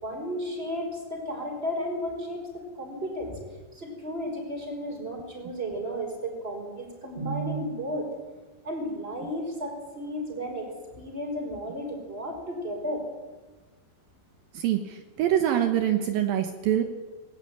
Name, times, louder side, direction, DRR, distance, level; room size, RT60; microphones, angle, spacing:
voice 1, 0.0-3.4 3.7-8.1 8.6-10.7 11.0-13.0, equal, 15° right, 2 dB, 5.3 m, -33 dB
voice 2, 14.5-16.8, right 11 dB, 75° right, 6 dB, 2.9 m, -25 dB
19.5 x 19.0 x 8.9 m, 1.3 s
omnidirectional pair, 4.3 m